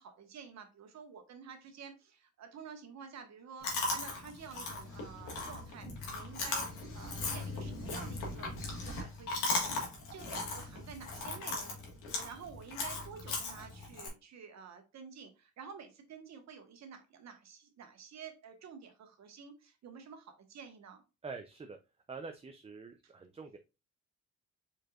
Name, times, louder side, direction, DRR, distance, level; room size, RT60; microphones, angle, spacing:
voice 1, 0.0-6.7 6.9-11.8 12.1-21.0 23.0-23.1, right 6 dB, 65° right, 6 dB, 1.3 m, -50 dB
Chewing mastication, 3.6-14.1, left 3 dB, 85° left, 1.7 m, -38 dB
voice 2, 21.2-21.8 22.1-23.6, right 4 dB, 20° right, 6 dB, 0.5 m, -45 dB
4.9 x 4.4 x 2.4 m, 0.28 s
cardioid pair, 90°, 30 cm